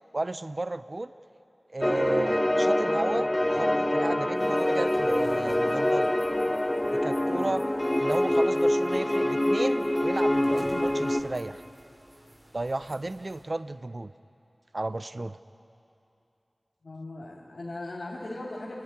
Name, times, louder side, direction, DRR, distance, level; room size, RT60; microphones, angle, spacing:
voice 1, 0.1-1.1 1.7-6.1 6.9-7.7 8.0-11.6 12.5-14.1 14.7-15.4, right 2 dB, 55° right, 14 dB, 0.5 m, -33 dB
sound 1, 1.8-11.2, left 1 dB, 25° left, 1.0 m, -25 dB
sound 2, 4.4-13.4, equal, 35° right, 3.1 m, -46 dB
voice 2, 16.8-18.8, left 2 dB, 90° left, -6 dB, 2.6 m, -38 dB
30.0 x 10.5 x 9.7 m, 2.7 s
wide cardioid pair, 40°, 0 cm